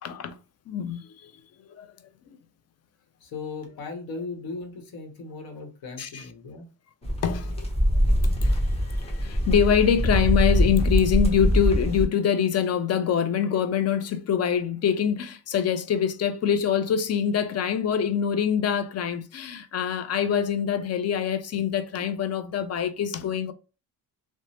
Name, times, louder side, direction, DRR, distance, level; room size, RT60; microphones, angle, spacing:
voice 1, 0.0-0.4 0.7-1.3 1.7-1.9 6.0-6.2 7.2-7.7 7.9-8.6 9.0-23.5, left 8 dB, 45° left, 0.5 m, -25 dB
voice 2, 3.2-6.7, left 4 dB, 80° left, 1.0 m, -37 dB
sound 1, 7.0-12.0, equal, 15° left, 0.8 m, -23 dB
3.0 x 2.1 x 2.7 m
cardioid pair, 100°, 35 cm